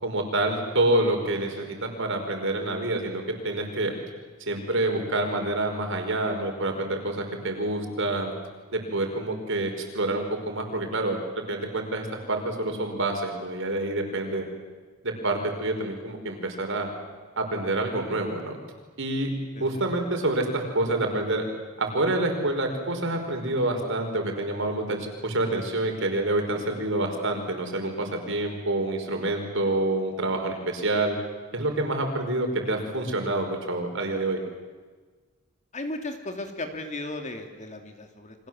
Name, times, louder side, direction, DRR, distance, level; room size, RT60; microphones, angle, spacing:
voice 1, 0.0-3.9 4.5-8.3 8.7-14.5 15.0-16.9 17.4-18.6 19.0-19.3 19.6-21.4 21.8-31.2 31.5-34.4, right 2 dB, 65° right, 4 dB, 5.3 m, -27 dB
voice 2, 35.7-38.5, left 2 dB, 35° left, 5 dB, 2.8 m, -35 dB
29.5 x 24.5 x 7.8 m, 1.4 s
head